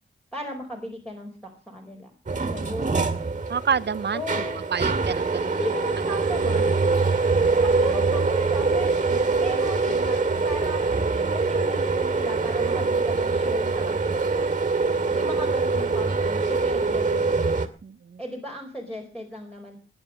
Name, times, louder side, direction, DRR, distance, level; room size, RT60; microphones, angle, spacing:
voice 1, 0.3-2.1 2.5-3.1 4.1-4.7 5.4-6.7 7.6-14.3 15.1-17.3 18.2-19.8, equal, 5° left, 4.5 m, -36 dB
sound 1, 2.3-17.7, right 4 dB, 35° right, 2.5 m, -24 dB
voice 2, 3.5-4.2 4.7-5.6 9.9-10.1 17.8-18.2, right 6 dB, 55° right, 0.8 m, -28 dB
20.5 x 9.8 x 6.4 m
wide cardioid pair, 90°, 21 cm